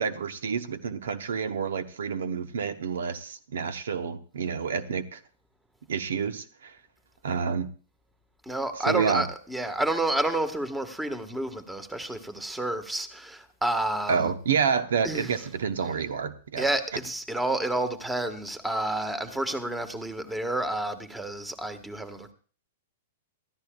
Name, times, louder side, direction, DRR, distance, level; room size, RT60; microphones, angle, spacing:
voice 1, 0.0-5.2 5.9-6.8 7.2-7.7 8.9-9.3 14.1-16.6, right 6 dB, 75° right, 0.9 m, -28 dB
voice 2, 8.4-14.3 15.0-15.3 16.6-22.3, right 1 dB, 5° right, 1.5 m, -30 dB
22.0 x 14.0 x 2.4 m
hypercardioid pair, 115°, 0 cm